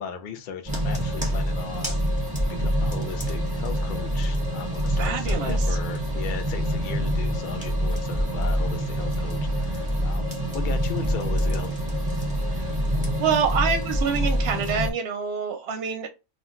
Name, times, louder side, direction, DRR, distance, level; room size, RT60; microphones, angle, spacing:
voice 1, 0.0-2.0 2.6-11.8, left 6 dB, 75° left, 0.4 m, -37 dB
sound 1, 0.6-14.9, equal, 5° right, 0.7 m, -26 dB
voice 2, 4.9-5.6 12.5-12.6 13.2-16.1, right 6 dB, 65° right, 0.7 m, -26 dB
2.2 x 2.2 x 3.6 m
omnidirectional pair, 1.4 m